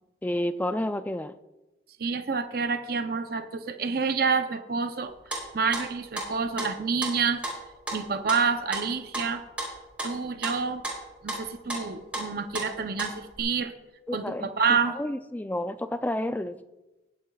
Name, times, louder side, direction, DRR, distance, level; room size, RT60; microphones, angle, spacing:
voice 1, 0.2-1.4 14.1-16.6, left 1 dB, 10° left, 11 dB, 0.3 m, -30 dB
voice 2, 2.0-5.1 5.5-7.4 7.9-9.4 10.0-10.8 11.2-13.7 14.1-15.0, right 5 dB, 55° right, 8 dB, 0.6 m, -28 dB
sound 1, 5.0-6.3 6.6-13.4, right 1 dB, 5° right, 3.4 m, -34 dB
20.0 x 7.9 x 2.3 m, 1.1 s
head